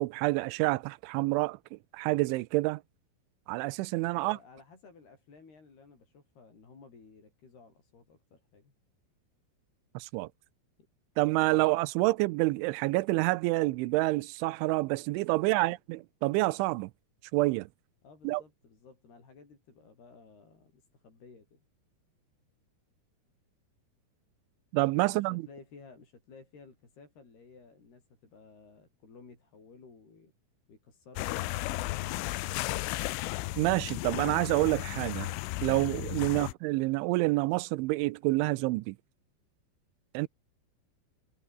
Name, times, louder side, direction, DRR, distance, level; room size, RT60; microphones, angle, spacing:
voice 1, 0.0-2.8 3.5-4.4 9.9-10.3 11.2-16.9 17.3-17.7 18.2-18.4 24.7-25.4 33.6-35.3 35.6-39.0 40.1-40.3, right 21 dB, 90° right, 3.1 m, -28 dB
voice 2, 4.2-8.7 11.4-11.7 12.0-12.1 15.4-15.8 18.0-21.6 25.1-30.3 30.7-33.2, left 4 dB, 55° left, 8.8 m, -55 dB
sound 1, 31.2-36.5, left 19 dB, 90° left, 3.4 m, -34 dB
omnidirectional pair, 5.5 m